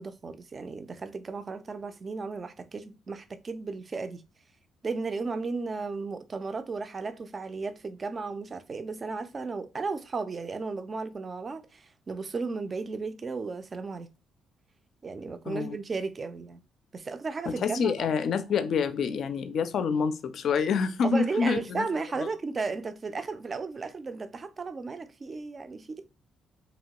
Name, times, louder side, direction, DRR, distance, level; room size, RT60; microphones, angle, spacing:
voice 1, 0.0-4.2 4.8-14.1 15.0-16.6 16.9-18.1 21.0-26.1, right 4 dB, 35° right, 0.3 m, -34 dB
voice 2, 15.5-15.8 17.5-21.9, left 6 dB, 65° left, 0.3 m, -27 dB
2.9 x 2.2 x 2.9 m
cardioid pair, 90°, 0 cm